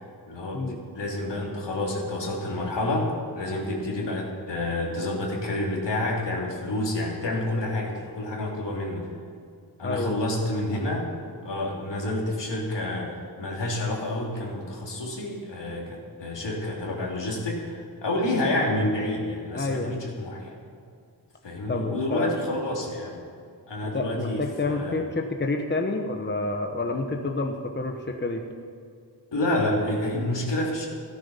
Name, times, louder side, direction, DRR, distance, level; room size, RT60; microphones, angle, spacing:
voice 1, 0.3-9.1 9.8-11.1 11.4-20.5 21.4-23.2 23.7-25.0 29.3-30.9, left 1 dB, 80° left, -2 dB, 3.4 m, -29 dB
voice 2, 9.8-10.2 19.5-20.0 21.7-22.3 23.8-28.4, left 3 dB, 25° left, 3 dB, 1.1 m, -28 dB
15.0 x 13.0 x 5.8 m, 2.4 s
wide cardioid pair, 95°, 41 cm